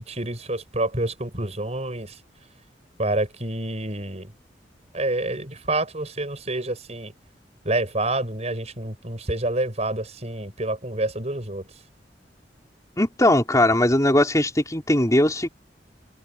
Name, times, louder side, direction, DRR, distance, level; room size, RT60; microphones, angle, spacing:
voice 1, 0.0-2.1 3.0-4.3 4.9-7.1 7.7-11.6, right 2 dB, 40° right, 6.2 m, -28 dB
voice 2, 13.0-15.5, left 1 dB, 20° left, 5.0 m, -19 dB
head